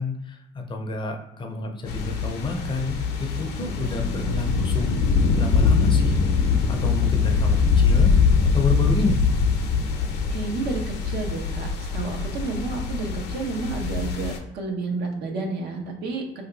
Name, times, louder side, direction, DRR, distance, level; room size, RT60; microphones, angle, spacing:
voice 1, 0.0-6.1 6.7-8.1 8.4-9.2, left 3 dB, 30° left, 4 dB, 0.5 m, -29 dB
sound 1, 1.9-14.4, left 5 dB, 80° left, 0.6 m, -23 dB
sound 2, 3.0-8.2 8.5-10.7, right 2 dB, 35° right, 0.7 m, -44 dB
voice 2, 10.3-16.5, right 3 dB, 75° right, 2 dB, 0.7 m, -30 dB
2.7 x 2.2 x 3.9 m, 0.87 s
cardioid pair, 110°, 17 cm